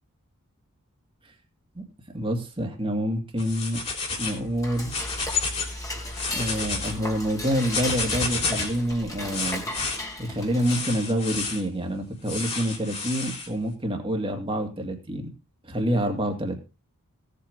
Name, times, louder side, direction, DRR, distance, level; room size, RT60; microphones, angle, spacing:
voice 1, 2.1-3.8 4.2-4.9 6.3-9.6 10.2-15.3 15.6-16.6, equal, 25° right, 3 dB, 2.3 m, -27 dB
sound 1, 3.4-4.4 4.8-5.7 6.1-6.9 7.6-8.8 9.3-10.0 10.6-11.6 12.3-13.5, left 4 dB, 30° left, 3.6 m, -30 dB
Dishes pots and pans / Cutlery silverware, 4.2-11.1, left 1 dB, 15° left, 2.4 m, -36 dB
17.0 x 8.2 x 3.7 m, 0.29 s
head